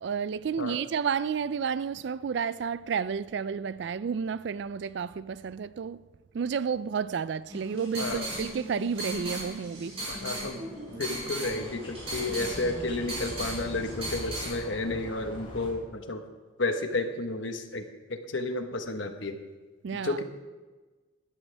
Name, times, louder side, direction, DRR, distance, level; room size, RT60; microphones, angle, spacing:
voice 1, 0.0-6.0 6.3-10.0 19.8-20.2, right 6 dB, 60° right, 0.3 m, -31 dB
sound 1, 7.5-14.5, right 1 dB, 30° right, 4.9 m, -37 dB
voice 2, 8.0-8.3 10.1-10.6 10.9-16.2 16.6-19.4 19.9-20.2, left 2 dB, 70° left, 1.2 m, -32 dB
sound 2, 9.9-15.7, equal, 25° left, 3.6 m, -43 dB
18.0 x 12.0 x 3.4 m
head